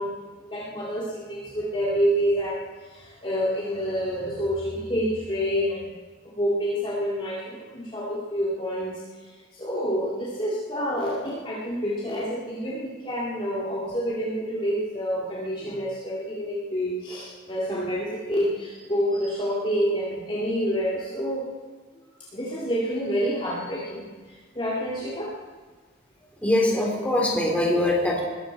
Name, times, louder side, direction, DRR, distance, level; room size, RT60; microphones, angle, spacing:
voice 1, 0.0-5.9 6.4-21.5 22.3-25.4, equal, 25° left, -6 dB, 2.2 m, -28 dB
voice 2, 26.4-28.2, left 1 dB, 5° left, -3 dB, 3.8 m, -22 dB
21.0 x 13.5 x 4.6 m, 1.4 s
head